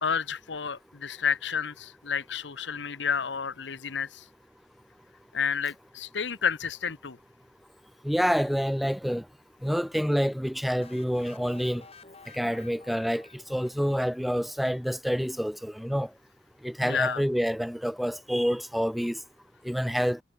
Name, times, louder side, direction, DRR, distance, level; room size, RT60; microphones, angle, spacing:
voice 1, 0.0-4.2 5.3-7.2 16.8-17.2, left 6 dB, 75° left, 1.0 m, -30 dB
voice 2, 8.0-9.2 9.6-11.8 12.3-16.1 16.6-19.2 19.6-20.2, equal, ahead, 0.9 m, -27 dB
sound 1, 10.8-14.6, left 4 dB, 35° left, 4.2 m, -52 dB
head